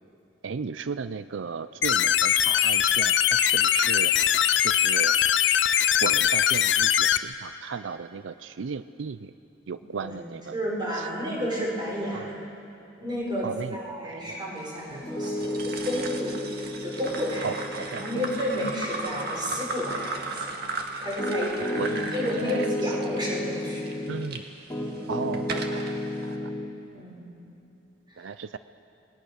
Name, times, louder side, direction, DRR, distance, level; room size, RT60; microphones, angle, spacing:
voice 1, 0.4-4.1 4.6-5.2 6.0-9.3 9.7-10.5 10.9-11.1 12.1-12.3 13.4-13.8 14.0-14.4 17.4-18.2 21.8-22.7 24.1-24.4 25.1-25.9 26.2-26.5 28.2-28.6, right 5 dB, 85° right, 13 dB, 0.5 m, -35 dB
sound 1, 1.8-7.2, left 10 dB, 70° left, 0.6 m, -21 dB
voice 2, 10.5-12.5 13.0-16.4 16.8-21.6 21.9-24.0 24.9-25.2 26.9-27.3 28.2-28.3, equal, 25° right, -4 dB, 5.8 m, -32 dB
Piano, 14.9-24.3 24.7-26.7, left 1 dB, 15° left, 3.0 m, -33 dB
sound 2, 15.2-24.4 25.0-25.9, right 3 dB, 60° right, 1.9 m, -36 dB
27.5 x 20.5 x 6.6 m, 2.7 s
head